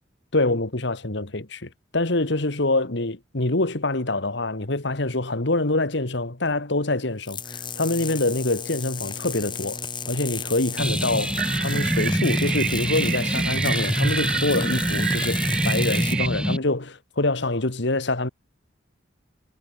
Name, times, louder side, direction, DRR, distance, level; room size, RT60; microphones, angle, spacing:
voice 1, 0.3-7.4 7.8-9.8 10.1-18.3, left 2 dB, 65° left, 2.0 m, -25 dB
sound 1, 7.2-16.2, left 5 dB, 25° left, 2.1 m, -34 dB
sound 2, 10.8-16.6, equal, 5° right, 3.0 m, -25 dB
sound 3, 11.4-16.3, right 10 dB, 50° right, 1.7 m, -30 dB
head